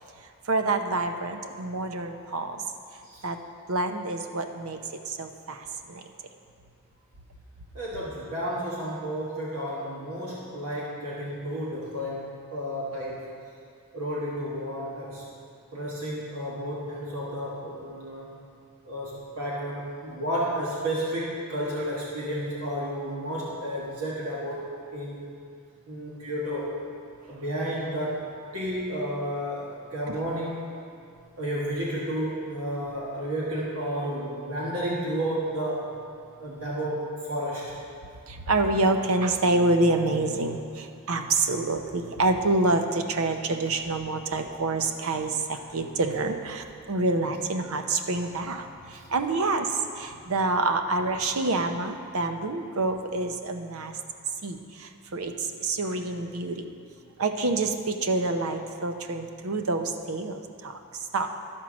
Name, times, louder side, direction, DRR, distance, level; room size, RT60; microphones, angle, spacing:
voice 1, 0.5-2.6 3.2-3.4 3.7-4.8 5.1-6.1 30.1-30.2 38.3-53.9 54.4-56.7 57.2-61.3, right 2 dB, 75° right, 6 dB, 0.7 m, -27 dB
voice 2, 7.7-13.3 13.9-15.2 15.7-18.4 18.8-25.3 25.9-26.7 27.3-30.7 31.4-35.9 36.4-37.8 48.9-49.1, equal, 90° right, -5 dB, 1.4 m, -32 dB
12.0 x 4.5 x 6.2 m, 2.4 s
head